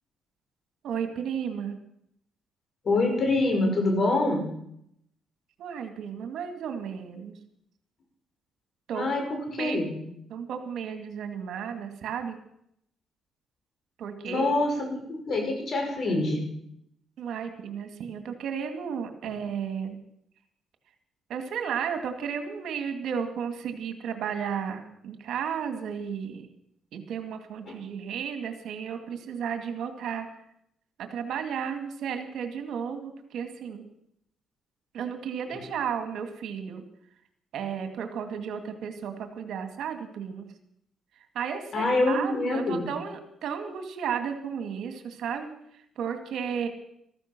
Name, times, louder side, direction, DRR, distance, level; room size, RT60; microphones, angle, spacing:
voice 1, 0.8-1.8 5.6-7.4 8.9-9.8 10.3-12.4 14.0-14.5 17.2-20.0 21.3-26.5 26.9-30.3 31.0-33.8 34.9-36.8 37.5-40.4 41.3-45.5 46.0-46.7, right 7 dB, 75° right, 7 dB, 2.2 m, -33 dB
voice 2, 2.8-4.4 8.9-9.9 14.2-16.4 19.2-19.3 27.7-27.8 35.5-35.6 41.7-42.8, left 2 dB, 50° left, 2 dB, 5.8 m, -26 dB
14.5 x 14.0 x 6.1 m, 0.73 s
cardioid pair, 90°, 0 cm